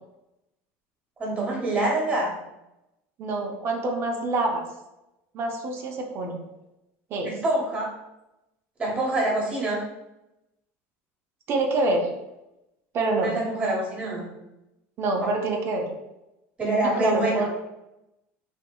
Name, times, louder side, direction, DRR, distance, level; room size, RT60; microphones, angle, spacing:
voice 1, 1.2-2.4 7.2-7.9 8.8-9.8 13.2-14.3 15.2-15.3 16.6-17.5, right 2 dB, 20° right, -3 dB, 1.1 m, -25 dB
voice 2, 3.2-4.6 5.3-6.4 7.1-7.3 11.5-12.1 12.9-13.3 15.0-15.9 17.0-17.5, right 2 dB, 40° right, 2 dB, 0.5 m, -26 dB
2.8 x 2.5 x 2.2 m, 0.93 s
supercardioid pair, 130°, 6 cm